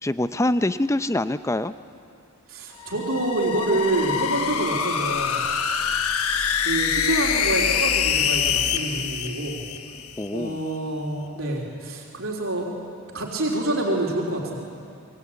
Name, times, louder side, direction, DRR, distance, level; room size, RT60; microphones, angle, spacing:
voice 1, 0.0-1.7 10.2-10.6, left 1 dB, 15° left, 12 dB, 0.5 m, -24 dB
voice 2, 2.5-5.4 6.6-9.6 10.3-12.7 13.1-14.6, right 2 dB, 65° right, -2 dB, 3.5 m, -27 dB
sound 1, 2.8-10.3, left 7 dB, 75° left, 1.3 m, -25 dB
25.5 x 22.0 x 8.5 m, 2.5 s
head